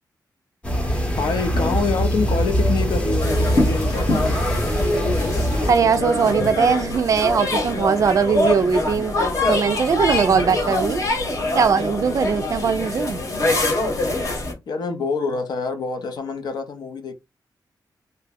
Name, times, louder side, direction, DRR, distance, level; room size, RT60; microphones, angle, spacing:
sound 1, 0.6-5.7, equal, 15° left, 0.6 m, -22 dB
voice 1, 1.2-4.6 14.7-17.1, left 4 dB, 70° left, 0.5 m, -26 dB
sound 2, 3.2-14.5, left 2 dB, 50° left, 1.0 m, -24 dB
voice 2, 5.7-9.2 9.5-11.0 11.5-13.2, right 6 dB, 50° right, 0.3 m, -20 dB
2.7 x 2.0 x 3.4 m
wide cardioid pair, 170°, 7 cm